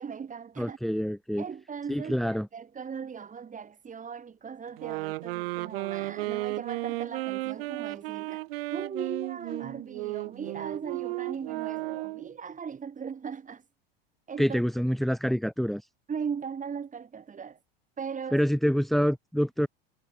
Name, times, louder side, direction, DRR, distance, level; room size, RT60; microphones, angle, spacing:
voice 1, 0.0-0.8 1.4-13.6 14.3-14.6 16.1-17.6 18.0-18.4, right 6 dB, 25° right, 5.3 m, -38 dB
voice 2, 0.6-1.4 1.9-2.5 14.4-15.8 18.3-19.7, equal, ahead, 3.1 m, -26 dB
sound 1, 4.8-12.3, right 20 dB, 70° right, 5.0 m, -34 dB
hypercardioid pair, 95°, 30 cm